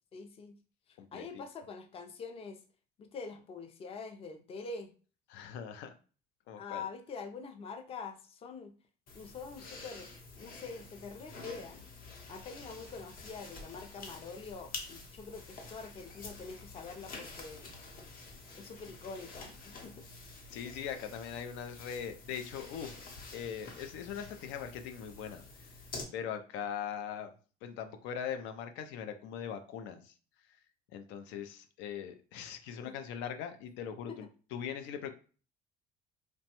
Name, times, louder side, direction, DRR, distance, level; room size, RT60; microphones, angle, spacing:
voice 1, 0.1-0.6 1.1-2.6 3.0-4.9 6.6-8.7 9.1-10.1 10.4-11.8 12.3-17.8 18.5-19.9 32.8-32.9 34.1-34.2, left 4 dB, 30° left, 5 dB, 0.4 m, -45 dB
voice 2, 5.3-6.0 6.5-6.9 16.5-16.6 20.5-23.0 23.3-25.7 26.1-27.3 27.6-30.2 30.5-30.6 30.9-35.1, left 8 dB, 85° left, 7 dB, 0.5 m, -41 dB
sound 1, 9.1-26.0, left 3 dB, 50° left, 0.8 m, -48 dB
3.0 x 2.2 x 2.9 m, 0.37 s
cardioid pair, 130°, 19 cm